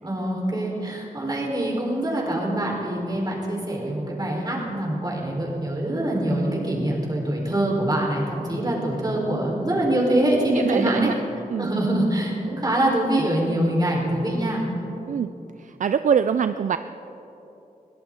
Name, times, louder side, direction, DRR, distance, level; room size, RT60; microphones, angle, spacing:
voice 1, 0.0-11.1 11.6-14.7, right 1 dB, 25° right, -2 dB, 4.1 m, -24 dB
voice 2, 10.5-11.1 11.5-11.7 15.1-15.3 15.6-16.8, right 7 dB, 60° right, 11 dB, 0.4 m, -23 dB
22.0 x 17.0 x 3.8 m, 3.0 s
wide cardioid pair, 105°, 15 cm